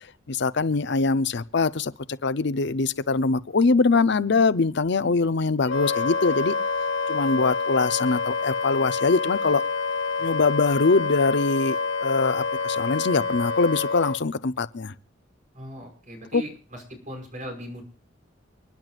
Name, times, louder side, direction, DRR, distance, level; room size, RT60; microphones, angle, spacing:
voice 1, 0.3-1.9 2.2-6.5 7.1-9.6 10.2-14.9 16.3-16.4, left 3 dB, 65° left, 0.7 m, -23 dB
Wind instrument woodwind instrument, 5.7-14.2, left 4 dB, 90° left, 1.7 m, -27 dB
voice 2, 15.5-17.8, equal, 45° right, 5.7 m, -39 dB
29.5 x 10.5 x 2.5 m
head